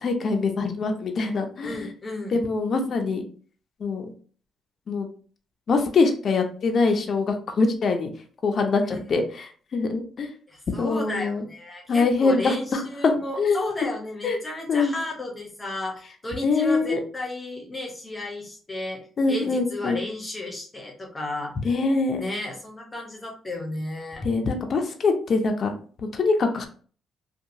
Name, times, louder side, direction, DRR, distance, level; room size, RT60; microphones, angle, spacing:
voice 1, 0.0-1.9 2.3-3.2 3.8-4.1 4.9-5.1 5.7-8.1 8.4-9.5 9.7-10.3 10.8-11.4 11.9-13.6 14.2-14.4 14.7-14.9 16.4-17.0 19.2-20.0 21.6-22.2 24.2-25.7 26.1-26.7, left 4 dB, 50° left, 4 dB, 0.5 m, -23 dB
voice 2, 1.6-2.4 8.9-9.0 10.5-21.5 22.2-24.2, left 2 dB, 20° left, 0 dB, 0.8 m, -33 dB
2.7 x 2.2 x 2.6 m, 0.42 s
cardioid pair, 90°, 0 cm